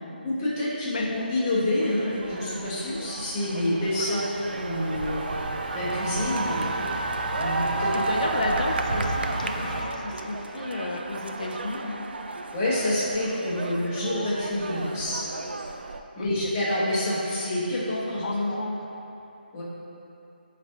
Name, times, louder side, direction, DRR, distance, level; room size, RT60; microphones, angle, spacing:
voice 1, 0.2-5.2 5.7-7.9 12.5-15.2 16.1-18.6 19.5-19.6, left 1 dB, 15° left, -9 dB, 1.0 m, -28 dB
sound 1, 1.8-16.0, right 3 dB, 70° right, 0.4 m, -33 dB
Car passing by, 3.8-9.8, right 1 dB, 50° right, 0.8 m, -34 dB
voice 2, 7.9-12.1 16.2-16.3 18.2-18.8, left 2 dB, 45° left, 1 dB, 0.4 m, -32 dB
8.0 x 3.3 x 3.7 m, 2.8 s
hypercardioid pair, 170°, 6 cm